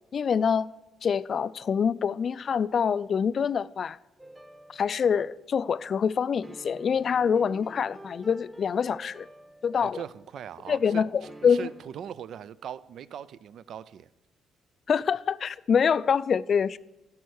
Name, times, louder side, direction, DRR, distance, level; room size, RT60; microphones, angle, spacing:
voice 1, 0.1-0.7 1.0-4.0 4.7-9.3 9.6-10.0 10.7-11.7 14.9-16.8, left 7 dB, 50° left, 0.3 m, -25 dB
sound 1, 4.2-5.6 6.4-10.4 11.2-11.9, right 1 dB, 15° right, 1.0 m, -50 dB
voice 2, 9.8-14.1, right 9 dB, 70° right, 0.3 m, -40 dB
12.5 x 5.5 x 6.3 m
cardioid pair, 90°, 0 cm